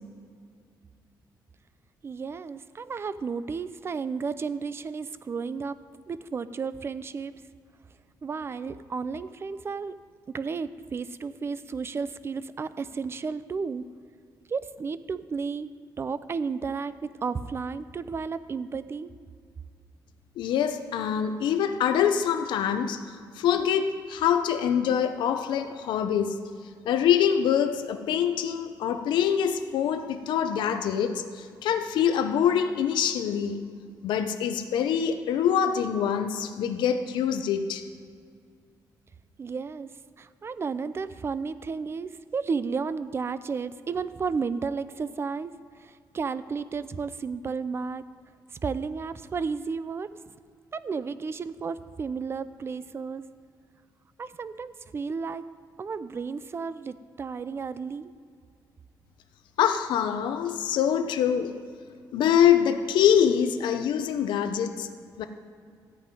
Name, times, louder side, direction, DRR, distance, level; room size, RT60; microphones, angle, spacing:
voice 1, 2.0-5.8 6.1-7.4 8.2-10.0 10.3-13.8 14.5-15.7 16.0-19.1 39.4-39.9 40.2-45.5 45.8-48.0 48.6-50.1 50.7-53.2 54.2-55.5 55.8-58.1, right 5 dB, 35° right, 14 dB, 0.5 m, -33 dB
voice 2, 20.4-23.0 23.4-26.4 26.8-33.6 34.0-37.8 59.6-61.5 62.1-64.9 65.2-65.3, left 8 dB, 90° left, 8 dB, 0.8 m, -24 dB
14.0 x 5.6 x 9.2 m, 2.2 s
cardioid pair, 125°, 8 cm